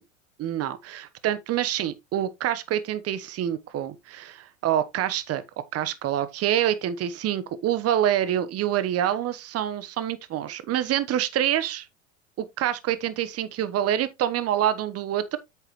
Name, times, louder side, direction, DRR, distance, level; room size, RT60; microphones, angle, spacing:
voice 1, 0.4-5.4 5.7-11.9 12.4-15.4, right 11 dB, 35° right, 1.2 m, -26 dB
8.2 x 6.7 x 3.1 m
hypercardioid pair, 80°, 40 cm